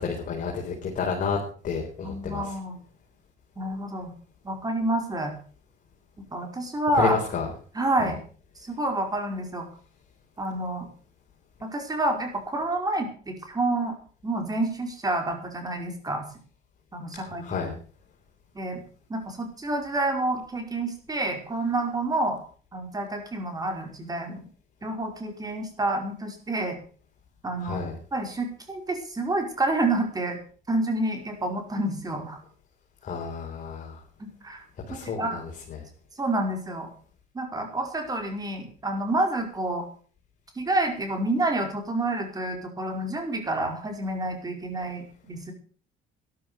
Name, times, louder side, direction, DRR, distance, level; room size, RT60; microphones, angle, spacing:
voice 1, 0.0-1.4 1.6-2.5 6.9-7.5 8.0-8.1 17.1-17.7 27.6-27.9 33.0-34.0 34.9-35.8, left 5 dB, 50° left, -1 dB, 4.3 m, -30 dB
voice 2, 2.0-2.8 3.6-4.1 4.4-5.3 6.3-7.2 7.7-8.2 8.6-9.6 10.4-10.9 11.6-14.0 14.2-16.2 16.9-17.4 18.5-18.8 19.1-22.4 22.7-24.4 24.8-26.8 27.4-27.8 28.1-30.4 30.7-32.4 34.2-34.6 34.9-35.4 36.2-36.9 37.3-39.8 40.5-45.5, right 2 dB, 20° right, 4 dB, 5.0 m, -28 dB
13.0 x 11.5 x 6.9 m, 0.43 s
cardioid pair, 110°, 17 cm